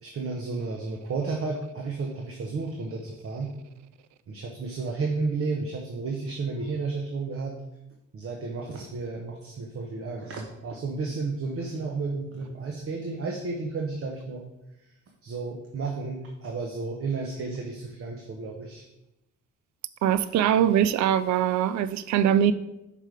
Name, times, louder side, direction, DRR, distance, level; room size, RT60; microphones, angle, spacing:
voice 1, 0.0-3.5 4.3-7.6 8.1-14.4 15.2-18.8, right 3 dB, 50° right, 1 dB, 1.0 m, -32 dB
voice 2, 20.0-22.5, right 10 dB, 70° right, 15 dB, 0.4 m, -22 dB
5.3 x 5.0 x 5.0 m, 0.91 s
cardioid pair, 90°, 30 cm